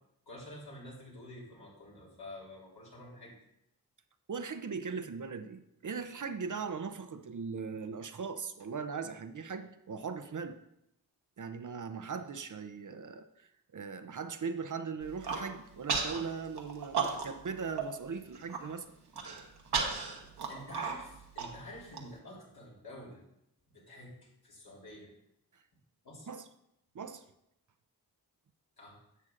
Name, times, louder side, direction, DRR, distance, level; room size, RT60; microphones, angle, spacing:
voice 1, 0.2-3.3 20.5-23.2 23.7-24.1 24.4-25.1 26.0-26.3 28.8-29.0, left 1 dB, 70° left, -5 dB, 3.4 m, -48 dB
voice 2, 4.3-10.6 11.4-18.9 25.5-25.6 26.3-26.5 26.9-27.2, right 5 dB, 50° right, 10 dB, 0.7 m, -39 dB
Human voice, 15.0-15.4 15.9-16.2 16.6-17.5 17.8-17.9 18.3-18.6 19.1-22.0, right 5 dB, 80° right, 1.2 m, -34 dB
11.0 x 7.2 x 2.5 m, 0.79 s
cardioid pair, 40°, 39 cm